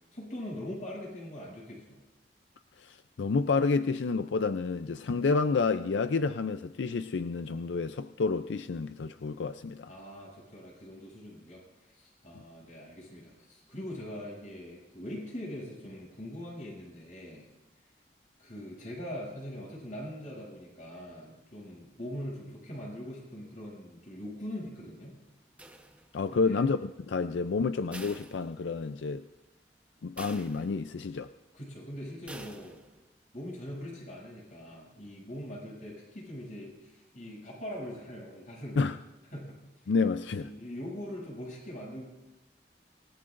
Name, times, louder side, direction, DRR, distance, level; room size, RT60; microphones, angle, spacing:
voice 1, 0.1-2.0 9.9-17.5 18.4-25.2 26.3-26.6 31.5-32.8 33.3-39.0 39.3-39.6 39.8-39.9 40.4-42.0, equal, 45° left, -3 dB, 7.6 m, -42 dB
voice 2, 2.8-9.9 26.1-29.2 30.0-31.3 38.8-39.0 39.9-40.5, left 4 dB, 85° left, 10 dB, 0.5 m, -29 dB
sound 1, 25.6-26.4 27.9-29.1 29.4-29.5 30.2-31.1 32.3-33.1, right 1 dB, 5° right, 0.9 m, -48 dB
26.5 x 18.5 x 2.6 m, 1.0 s
head